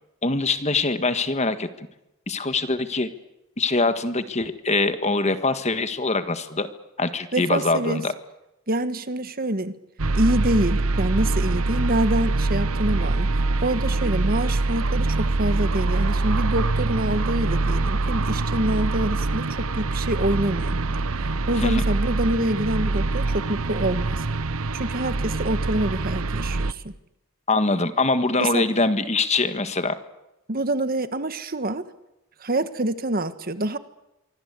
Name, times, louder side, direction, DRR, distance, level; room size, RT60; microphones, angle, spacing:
voice 1, 0.2-1.7 2.3-3.1 3.6-6.7 7.0-8.1 21.6-21.8 27.5-30.0, left 3 dB, 30° left, 10 dB, 1.6 m, -23 dB
voice 2, 7.3-8.0 8.7-9.7 10.1-13.3 13.6-19.5 19.7-20.8 21.2-24.2 24.7-26.9 28.4-28.6 30.5-31.8 32.4-33.8, right 1 dB, 40° right, 11 dB, 1.5 m, -26 dB
sound 1, 10.0-26.7, right 3 dB, 70° right, 1.0 m, -24 dB
25.5 x 24.5 x 8.4 m, 0.91 s
head